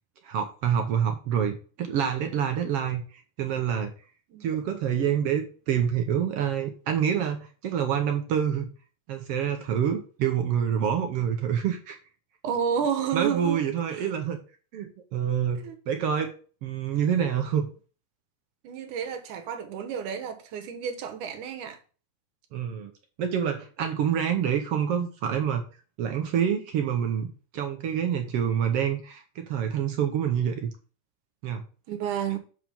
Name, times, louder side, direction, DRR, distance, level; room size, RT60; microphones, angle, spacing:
voice 1, 0.2-3.9 4.4-8.7 9.1-12.0 13.1-14.4 14.7-16.3 16.6-17.7 22.5-22.9 23.2-25.6 26.0-30.7 31.4-31.6, right 8 dB, 65° right, 1.6 m, -27 dB
voice 2, 12.4-13.6 13.9-14.1 15.6-15.8 18.6-21.8 31.9-32.4, right 7 dB, 90° right, 2.7 m, -30 dB
7.4 x 5.0 x 5.3 m
omnidirectional pair, 3.4 m